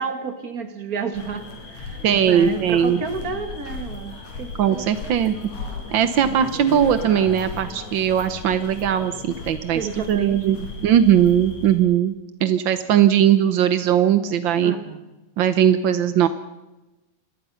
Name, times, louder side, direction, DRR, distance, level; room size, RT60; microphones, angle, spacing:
voice 1, 0.0-5.5 6.2-6.4 9.7-10.6 14.6-15.1, right 5 dB, 35° right, 8 dB, 2.2 m, -31 dB
sound 1, 1.1-11.8, left 3 dB, 70° left, 5.6 m, -36 dB
voice 2, 2.0-3.0 4.6-5.3 5.9-9.8 10.1-10.6 10.8-14.7 15.4-16.3, right 9 dB, 75° right, 11 dB, 1.1 m, -19 dB
27.0 x 21.5 x 5.8 m, 1.0 s
omnidirectional pair, 3.4 m